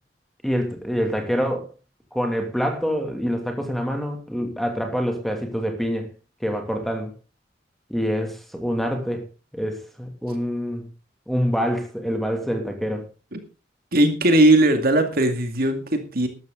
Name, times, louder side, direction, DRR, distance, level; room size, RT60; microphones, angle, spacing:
voice 1, 0.4-1.7 2.1-6.1 6.4-7.1 7.9-9.2 9.5-10.9 11.3-13.1, equal, ahead, 4 dB, 2.6 m, -26 dB
voice 2, 13.9-16.3, right 1 dB, 55° right, 7 dB, 2.3 m, -18 dB
14.0 x 12.5 x 3.9 m, 0.31 s
head